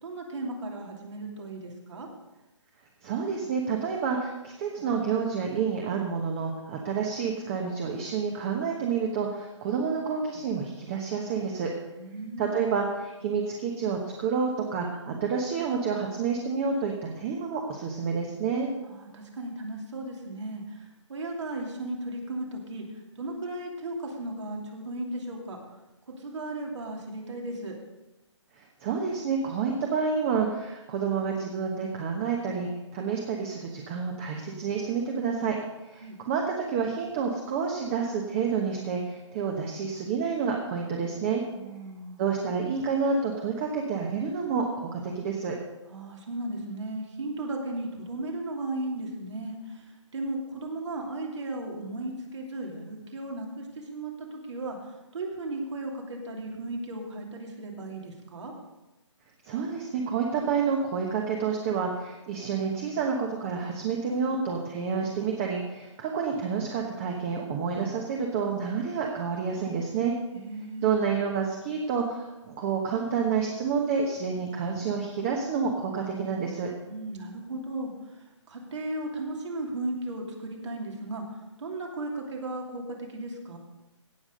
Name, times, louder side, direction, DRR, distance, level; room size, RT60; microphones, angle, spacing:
voice 1, 0.0-2.1 11.9-12.6 18.9-22.8 23.2-25.6 26.2-27.8 36.0-36.2 41.5-42.2 45.9-49.8 50.1-54.8 55.1-58.5 70.3-70.9 76.9-77.9 78.5-83.6, right 2 dB, 65° right, 0 dB, 2.9 m, -36 dB
voice 2, 3.0-11.7 12.4-18.7 28.5-35.6 35.9-41.4 42.2-45.6 59.5-70.1 70.8-76.7, right 6 dB, 25° right, 1 dB, 1.2 m, -29 dB
17.0 x 6.2 x 5.2 m, 1.0 s
hypercardioid pair, 155°, 16 cm